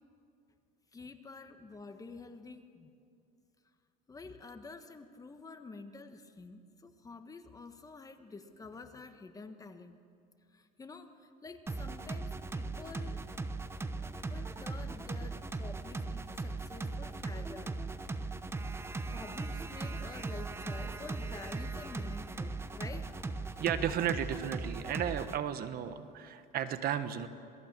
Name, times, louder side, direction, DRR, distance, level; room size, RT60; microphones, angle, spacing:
voice 1, 0.9-2.9 4.1-10.0 10.5-13.2 14.1-17.8 18.4-23.6, left 3 dB, 15° left, 7 dB, 1.4 m, -49 dB
sound 1, 11.7-25.4, right 3 dB, 10° right, 0.9 m, -39 dB
voice 2, 23.6-27.3, right 9 dB, 50° right, 11 dB, 1.3 m, -34 dB
27.0 x 19.0 x 7.5 m, 2.4 s
supercardioid pair, 120°, 20 cm